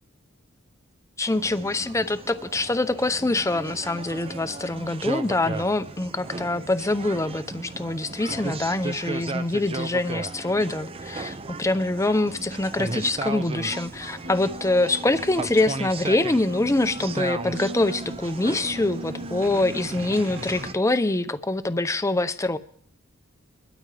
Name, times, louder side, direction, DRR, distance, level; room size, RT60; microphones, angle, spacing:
voice 1, 1.2-22.6, left 2 dB, 15° left, 12 dB, 0.6 m, -25 dB
sound 1, 1.3-20.7, right 3 dB, 25° right, 0.6 m, -36 dB
sound 2, 12.2-20.7, right 1 dB, 75° right, 3.5 m, -40 dB
23.0 x 13.0 x 3.4 m, 0.62 s
head